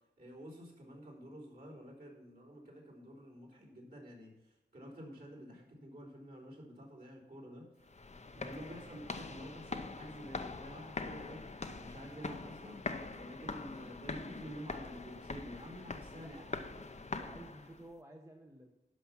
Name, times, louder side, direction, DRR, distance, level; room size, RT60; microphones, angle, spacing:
voice 1, 0.2-7.7 8.3-12.9 13.1-16.5, equal, 55° right, -5 dB, 3.8 m, -50 dB
sound 1, 7.8-17.9, left 3 dB, 40° left, 0.7 m, -43 dB
voice 2, 8.5-9.1 16.1-16.5 17.1-18.7, right 1 dB, 15° right, 2 dB, 0.9 m, -54 dB
11.5 x 5.8 x 5.9 m, 0.97 s
wide cardioid pair, 100°, 19 cm